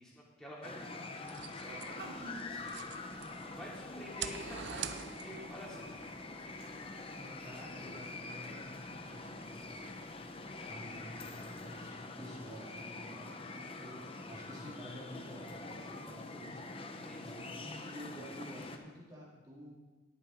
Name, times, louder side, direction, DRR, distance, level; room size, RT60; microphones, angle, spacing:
voice 1, 0.0-6.7 10.5-10.8 16.9-17.5, equal, 5° left, -6 dB, 2.8 m, -51 dB
sound 1, 0.6-18.8, left 3 dB, 30° left, 0.7 m, -45 dB
sound 2, 1.2-3.5 4.0-5.6, right 8 dB, 55° right, 0.5 m, -44 dB
sound 3, 1.7-11.9, right 1 dB, 85° right, 3.3 m, -56 dB
voice 2, 7.1-10.2 10.7-14.0 14.3-16.6 17.1-19.7, equal, 20° right, -6 dB, 2.9 m, -50 dB
18.5 x 6.9 x 4.5 m, 1.3 s
head